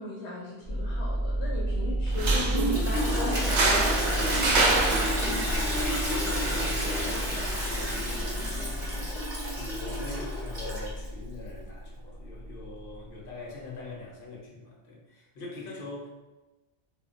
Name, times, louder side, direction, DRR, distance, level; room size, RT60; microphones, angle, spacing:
voice 1, 0.0-4.9, left 3 dB, 90° left, -4 dB, 0.9 m, -39 dB
sound 1, 0.6-13.3, right 1 dB, 40° left, 0.5 m, -32 dB
sound 2, 2.1-9.1, right 2 dB, 55° right, 0.5 m, -29 dB
Toilet flush, 2.5-11.1, equal, 30° right, 0.9 m, -31 dB
voice 2, 5.7-8.0 8.4-9.3 9.5-16.1, left 2 dB, 60° left, -3 dB, 0.9 m, -43 dB
2.2 x 2.0 x 3.6 m, 1.1 s
omnidirectional pair, 1.1 m